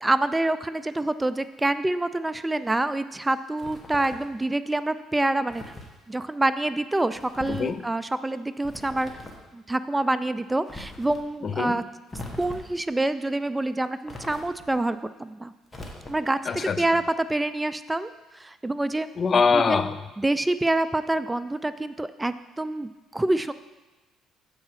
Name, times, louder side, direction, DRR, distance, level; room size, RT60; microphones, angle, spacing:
voice 1, 0.0-5.6 6.1-9.1 9.5-11.8 12.4-15.5 16.1-19.1 19.5-19.9 20.2-23.5, right 2 dB, 15° right, 13 dB, 0.3 m, -26 dB
sound 1, 3.6-4.3 5.5-5.9 7.1-7.7 8.6-9.5 10.7-11.2 12.1-12.8 14.1-14.8 15.7-16.4, left 1 dB, 20° left, 1.5 m, -41 dB
voice 2, 7.5-7.8 11.4-11.8 16.5-16.8 19.2-20.0, left 5 dB, 45° left, 12 dB, 0.5 m, -23 dB
7.3 x 4.8 x 6.4 m, 1.1 s
supercardioid pair, 75°, 0 cm